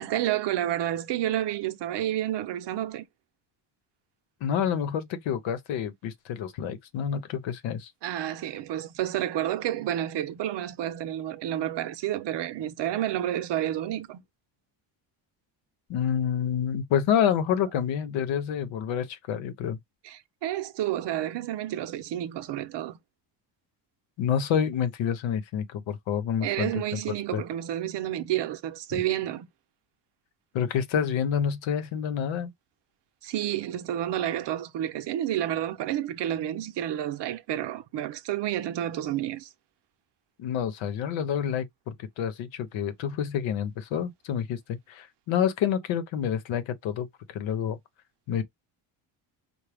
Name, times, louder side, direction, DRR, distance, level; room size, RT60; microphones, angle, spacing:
voice 1, 0.0-3.0 8.0-14.2 20.0-23.0 26.4-29.5 33.2-39.5, right 12 dB, 60° right, 0.8 m, -30 dB
voice 2, 4.4-7.9 15.9-19.8 24.2-27.0 27.3-27.4 28.9-29.0 30.5-32.5 40.4-47.8 48.3-48.4, left 8 dB, 70° left, 0.9 m, -28 dB
4.7 x 2.2 x 3.4 m
cardioid pair, 130°, 47 cm